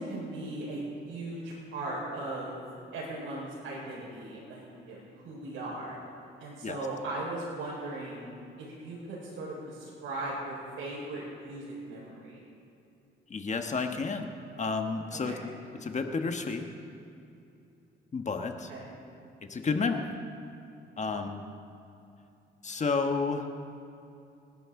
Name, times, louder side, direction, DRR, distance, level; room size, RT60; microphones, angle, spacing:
voice 1, 0.0-2.5 2.9-6.0 6.4-8.3 8.6-12.4 15.1-15.4 18.7-18.9, right 2 dB, 90° right, -7 dB, 4.7 m, -38 dB
voice 2, 13.3-14.3 14.6-15.5 15.8-16.6 18.1-18.7 19.5-20.2 21.0-21.4 22.6-23.5, left 4 dB, 35° left, 5 dB, 1.3 m, -31 dB
27.5 x 12.0 x 3.8 m, 2.7 s
cardioid pair, 90°, 20 cm